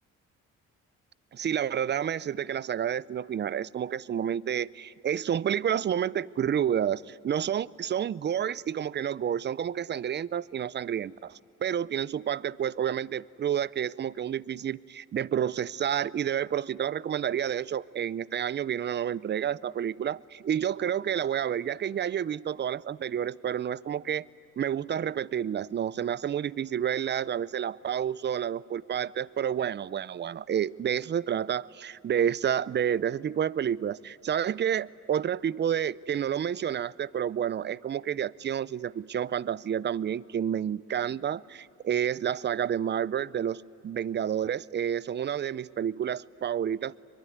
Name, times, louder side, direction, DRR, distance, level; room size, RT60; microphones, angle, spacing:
voice 1, 1.3-24.2 24.6-47.0, right 9 dB, 35° right, 21 dB, 0.5 m, -30 dB
23.0 x 22.5 x 9.5 m, 2.7 s
cardioid pair, 90°, 30 cm